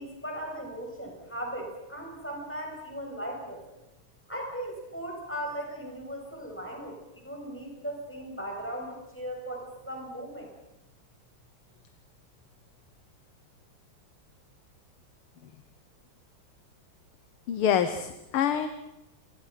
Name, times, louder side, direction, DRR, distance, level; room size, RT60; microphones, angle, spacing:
voice 1, 0.0-3.8 4.3-10.5, right 1 dB, 5° left, 0 dB, 7.2 m, -38 dB
voice 2, 17.5-18.7, left 9 dB, 80° left, 10 dB, 2.0 m, -26 dB
29.0 x 23.5 x 5.8 m, 0.93 s
omnidirectional pair, 2.4 m